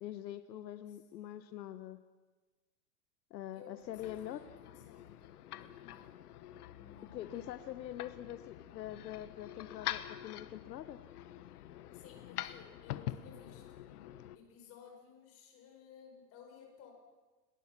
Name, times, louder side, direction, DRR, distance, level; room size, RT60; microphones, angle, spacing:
voice 1, 0.0-2.0 3.3-4.4 7.1-11.0, left 12 dB, 85° left, 11 dB, 1.2 m, -44 dB
voice 2, 3.5-5.2 5.5-6.1 6.7-8.0 11.9-13.9 14.3-16.9, left 7 dB, 30° left, 2 dB, 5.2 m, -57 dB
sound 1, 3.8-14.4, left 13 dB, 65° left, 1.2 m, -46 dB
29.5 x 19.0 x 6.0 m, 1.2 s
supercardioid pair, 165°, 49 cm